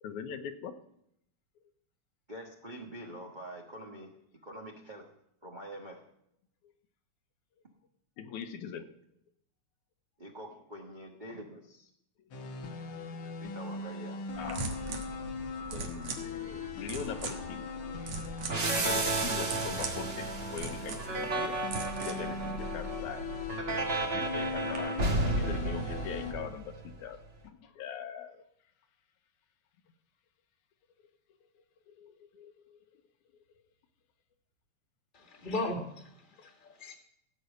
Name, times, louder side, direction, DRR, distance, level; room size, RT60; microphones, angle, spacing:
voice 1, 0.0-0.8 8.2-8.9 14.4-14.8 15.7-17.9 18.8-21.7 22.0-23.3 24.1-28.4 31.4-33.0 36.4-36.5, left 7 dB, 80° left, 8 dB, 2.3 m, -42 dB
voice 2, 2.3-4.1 4.4-5.1 5.4-6.0 10.2-11.9 13.4-14.2 14.6-14.8, right 1 dB, 80° right, 0 dB, 0.4 m, -45 dB
sound 1, 12.3-26.3, left 4 dB, 60° left, 1.5 m, -41 dB
sound 2, 14.3-24.8, right 2 dB, 60° right, 2.3 m, -41 dB
sound 3, 18.5-27.0, right 2 dB, 45° right, 0.7 m, -33 dB
voice 3, 35.1-36.9, left 2 dB, 25° left, 4 dB, 1.3 m, -37 dB
15.5 x 5.6 x 8.2 m, 0.74 s
omnidirectional pair, 3.4 m